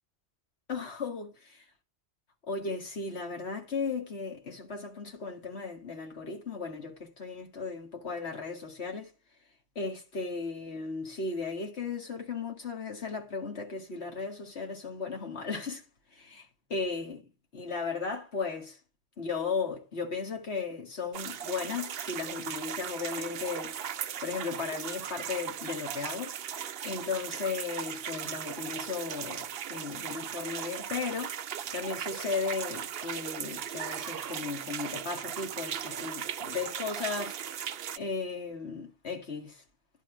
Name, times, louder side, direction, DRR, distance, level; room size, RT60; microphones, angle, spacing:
voice 1, 0.7-1.6 2.5-9.1 9.8-15.9 16.1-16.4 16.7-18.8 19.2-23.8 24.2-26.4 26.8-31.4 31.7-37.4 38.0-39.6, left 4 dB, 85° left, 2.2 m, -36 dB
sound 1, 21.1-38.0, right 9 dB, 70° right, 0.9 m, -38 dB
11.0 x 4.4 x 6.0 m
omnidirectional pair, 1.1 m